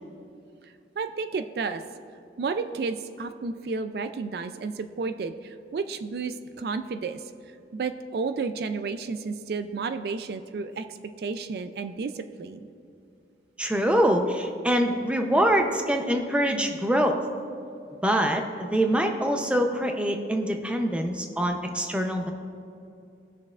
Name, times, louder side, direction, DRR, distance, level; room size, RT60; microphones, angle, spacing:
voice 1, 1.0-1.8 2.4-7.2 7.7-10.9 11.2-12.7, right 4 dB, 60° right, 9 dB, 0.3 m, -32 dB
voice 2, 13.6-17.2 18.0-22.3, equal, 5° right, 4 dB, 0.6 m, -24 dB
18.5 x 6.5 x 2.4 m, 2.6 s
head